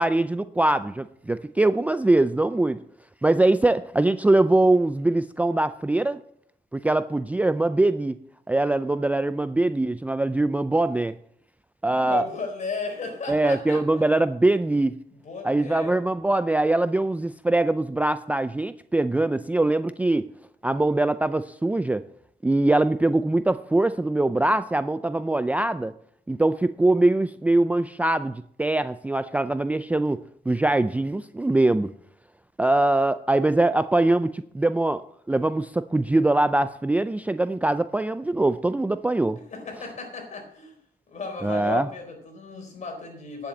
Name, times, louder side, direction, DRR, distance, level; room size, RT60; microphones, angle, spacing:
voice 1, 0.0-2.8 3.2-6.2 6.7-8.2 8.5-11.2 11.8-12.3 13.3-15.0 15.4-20.3 20.6-22.0 22.4-25.9 26.3-30.2 30.5-31.9 32.6-35.0 35.3-39.4 41.4-41.9, right 2 dB, 10° right, 12 dB, 0.4 m, -22 dB
voice 2, 11.8-14.2 15.1-16.0 39.5-40.8 41.1-43.5, left 4 dB, 50° left, 3 dB, 4.4 m, -35 dB
10.5 x 7.1 x 7.8 m, 0.67 s
cardioid pair, 100°, 16 cm